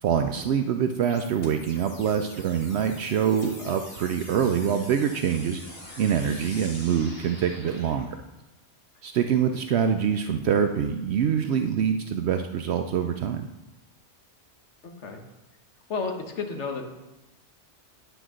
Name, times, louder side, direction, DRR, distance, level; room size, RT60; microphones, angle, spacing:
voice 1, 0.0-5.6 6.0-8.2 9.0-13.4, right 8 dB, 70° right, 6 dB, 0.8 m, -25 dB
sound 1, 1.0-8.0, left 1 dB, 55° left, 2.0 m, -45 dB
voice 2, 14.8-15.2 15.9-16.8, left 4 dB, 80° left, 3 dB, 1.5 m, -32 dB
10.0 x 4.5 x 6.2 m, 0.99 s
omnidirectional pair, 1.2 m